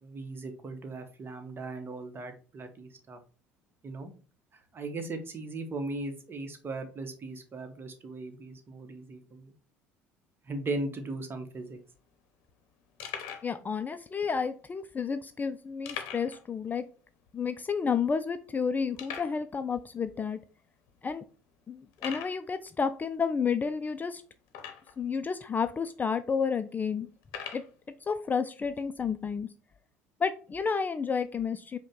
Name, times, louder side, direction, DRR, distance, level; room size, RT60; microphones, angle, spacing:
voice 1, 0.0-3.2 3.8-4.1 4.7-9.5 10.5-11.8, right 2 dB, 30° right, 6 dB, 0.9 m, -38 dB
sound 1, 11.5-11.6 11.8-12.0 12.5-12.6 13.0-13.5 14.3-14.4 15.8-16.4 16.7-16.8 17.3-17.4 17.9-18.0 19.0-19.4 20.2-20.3 20.9-21.0 21.9-22.4 24.5-25.0 25.8-25.9 27.2-27.7, left 8 dB, 60° left, 0.7 m, -40 dB
voice 2, 13.4-16.8 17.3-20.4 21.0-21.2 21.7-24.2 25.0-27.1 27.5-27.6 28.1-29.5 30.2-31.8, left 6 dB, 25° left, 11 dB, 0.3 m, -31 dB
5.1 x 2.2 x 3.7 m, 0.37 s
hypercardioid pair, 60°, 7 cm